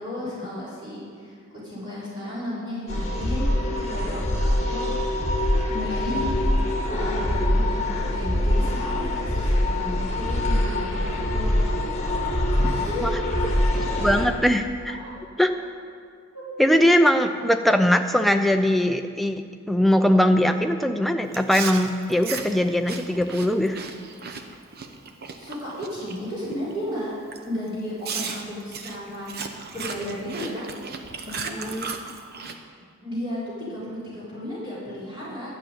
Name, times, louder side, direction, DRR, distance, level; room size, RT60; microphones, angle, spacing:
voice 1, 0.0-1.4 1.6-4.9 5.7-6.3 6.9-11.8 12.6-13.1 13.7-14.0 15.0-15.1 16.3-16.8 25.4-27.1 27.4-30.7 31.2-31.7 33.0-35.5, left 1 dB, 20° right, -10 dB, 4.0 m, -34 dB
sound 1, 2.9-14.3, left 1 dB, 30° left, 1.5 m, -24 dB
voice 2, 13.8-15.0 15.4-15.5 16.6-23.8 31.6-32.1, equal, ahead, 5 dB, 0.5 m, -21 dB
Chewing mastication, 21.3-26.2 26.5-26.8 27.3-27.4 28.0-32.6, right 5 dB, 45° right, 0.8 m, -36 dB
11.5 x 6.4 x 8.9 m, 2.1 s
head